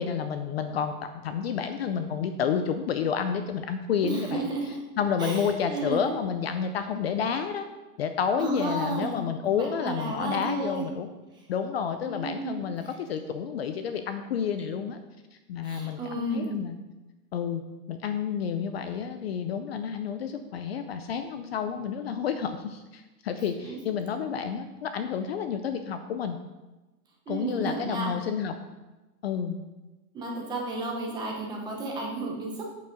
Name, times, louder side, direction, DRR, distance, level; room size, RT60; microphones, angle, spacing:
voice 1, 0.0-4.4 5.0-7.7 8.0-11.1 11.5-15.0 15.5-16.7 17.3-17.6 17.9-26.4 27.3-28.5 29.2-29.6, left 7 dB, 40° left, 8 dB, 0.5 m, -30 dB
voice 2, 4.0-4.8 5.2-6.2 8.4-10.9 11.3-11.5 12.0-12.7 15.6-16.6 23.6-23.8 27.3-28.1 30.1-32.6, right 2 dB, 10° right, -1 dB, 0.6 m, -33 dB
8.3 x 6.9 x 5.0 m, 1.1 s
supercardioid pair, 170°, 48 cm